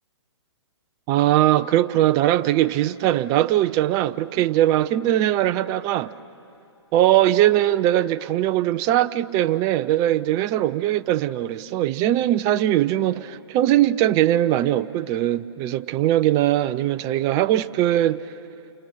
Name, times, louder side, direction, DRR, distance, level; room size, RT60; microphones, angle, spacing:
voice 1, 1.1-6.1 6.9-18.2, right 13 dB, 25° right, 0.6 m, -20 dB
29.5 x 27.5 x 5.9 m
figure-of-eight pair, 130°, 15 cm